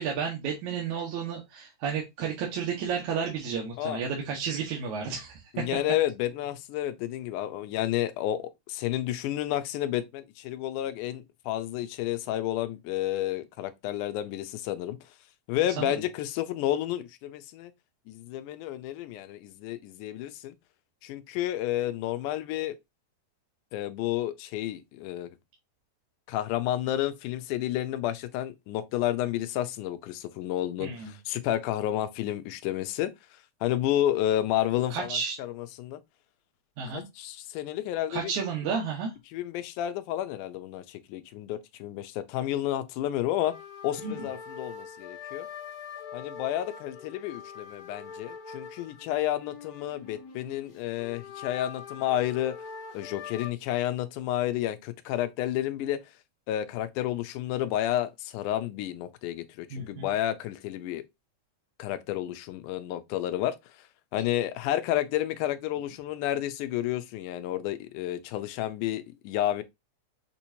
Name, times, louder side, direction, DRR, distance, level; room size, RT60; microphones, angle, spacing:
voice 1, 0.0-5.7 15.8-15.9 30.8-31.1 34.9-35.4 36.8-37.0 38.1-39.1 44.0-44.3 59.7-60.1, right 6 dB, 70° right, 2.4 m, -32 dB
voice 2, 5.5-15.0 15.5-17.7 18.1-20.5 21.0-22.8 23.7-25.3 26.3-33.1 33.6-36.0 36.9-38.3 39.3-43.6 43.8-45.5 46.1-52.6 52.9-56.0 56.5-61.0 61.8-63.9 64.1-69.6, left 13 dB, 85° left, 2.1 m, -31 dB
sound 1, 43.4-53.5, left 6 dB, 50° left, 1.8 m, -43 dB
6.8 x 2.9 x 2.7 m
omnidirectional pair, 3.6 m